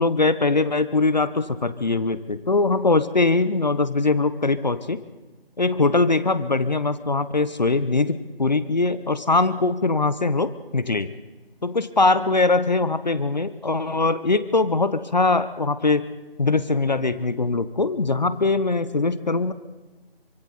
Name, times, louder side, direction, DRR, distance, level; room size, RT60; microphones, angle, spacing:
voice 1, 0.0-5.0 5.6-11.1 11.6-16.0 16.4-19.5, left 3 dB, 45° left, 14 dB, 0.9 m, -22 dB
27.5 x 25.0 x 4.1 m, 1.2 s
figure-of-eight pair, 170°, 31 cm